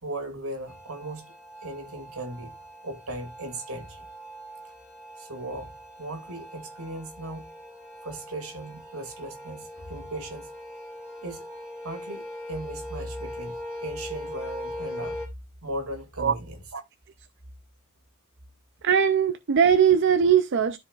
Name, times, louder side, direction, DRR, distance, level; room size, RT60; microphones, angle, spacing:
voice 1, 0.0-1.3 1.6-2.5 2.8-4.1 5.2-5.7 6.0-7.5 8.0-10.5 11.2-11.5 11.8-15.2 15.6-16.8, right 1 dB, 75° right, 2.3 m, -37 dB
sound 1, 0.7-15.3, left 1 dB, 5° right, 3.4 m, -41 dB
voice 2, 18.8-20.8, right 7 dB, 55° right, 0.5 m, -20 dB
13.0 x 4.7 x 2.4 m
head